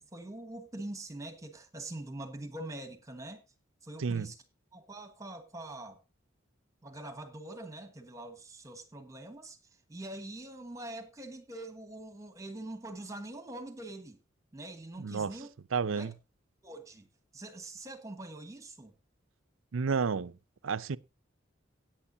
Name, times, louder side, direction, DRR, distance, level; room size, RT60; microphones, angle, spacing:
voice 1, 0.0-3.4 3.8-4.4 4.7-6.0 6.8-14.2 14.5-15.5 15.9-16.1 16.6-17.1 17.3-18.9, right 1 dB, 15° right, 1.3 m, -44 dB
voice 2, 15.0-15.3 15.7-16.1 19.7-20.4 20.6-21.0, right 5 dB, 80° right, 0.6 m, -31 dB
17.0 x 9.1 x 2.7 m
head